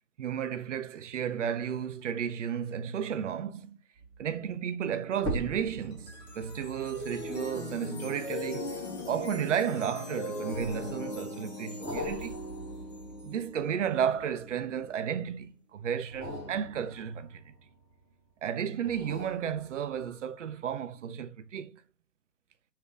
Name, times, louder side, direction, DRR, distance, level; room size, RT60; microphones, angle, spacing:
voice 1, 0.2-3.8 4.2-12.4 13.2-17.5 18.4-21.8, right 8 dB, 50° right, 0.5 m, -33 dB
sound 1, 3.9-4.3 5.1-9.8 10.5-11.1 11.8-14.8 16.0-18.1 18.8-20.2 20.7-20.8, equal, 5° left, 1.0 m, -42 dB
sound 2, 5.8-15.1, left 2 dB, 25° left, 0.5 m, -40 dB
3.3 x 2.7 x 3.3 m
hypercardioid pair, 145°, 49 cm